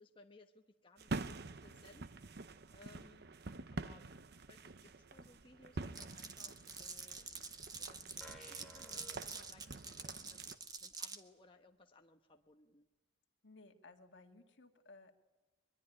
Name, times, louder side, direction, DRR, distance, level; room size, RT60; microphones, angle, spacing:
voice 1, 0.0-2.1 2.7-3.2 3.7-12.9, left 2 dB, 30° left, 3 dB, 1.1 m, -63 dB
sound 1, 1.0-10.6, right 3 dB, 60° right, 0.8 m, -47 dB
Glass, 5.9-11.2, right 4 dB, 20° right, 1.3 m, -47 dB
sound 2, 8.2-10.1, right 1 dB, ahead, 5.4 m, -57 dB
voice 2, 13.4-15.1, left 3 dB, 70° left, 5 dB, 2.0 m, -59 dB
22.5 x 22.0 x 10.0 m, 1.2 s
head